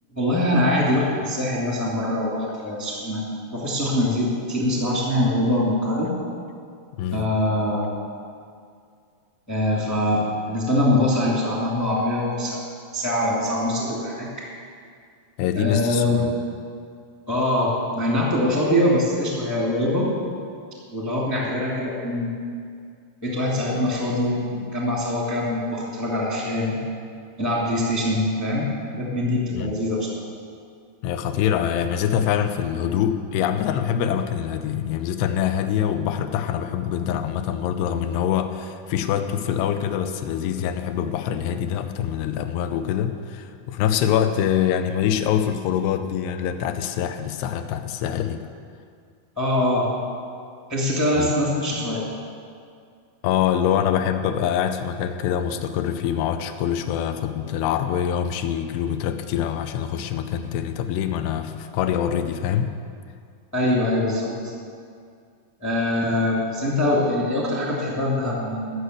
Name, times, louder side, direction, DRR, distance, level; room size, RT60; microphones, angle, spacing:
voice 1, 0.1-3.2 3.5-6.1 7.1-7.9 9.5-12.6 12.9-14.5 15.5-16.2 17.3-20.1 20.9-22.4 23.2-26.8 27.4-30.2 49.4-49.9 50.7-52.0 63.5-64.3 65.6-68.7, left 1 dB, 10° left, -4 dB, 0.9 m, -23 dB
voice 2, 15.4-16.3 29.6-29.7 31.0-48.4 51.2-51.3 53.2-62.7, left 9 dB, 90° left, 8 dB, 2.8 m, -24 dB
13.0 x 6.5 x 7.9 m, 2.3 s
omnidirectional pair, 4.8 m